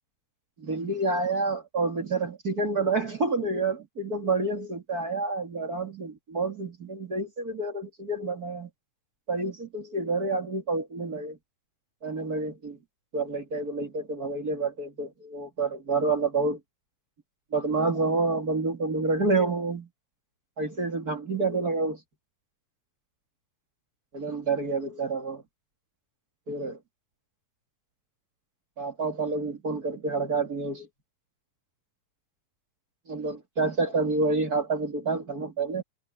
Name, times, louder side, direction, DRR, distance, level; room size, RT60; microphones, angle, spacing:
voice 1, 0.6-8.7 9.3-11.4 12.0-12.8 13.1-16.6 17.5-19.9 20.6-22.0 24.1-25.4 26.5-26.8 28.8-30.9 33.1-35.8, right 3 dB, 30° right, 2.3 m, -28 dB
omnidirectional pair, 3.9 m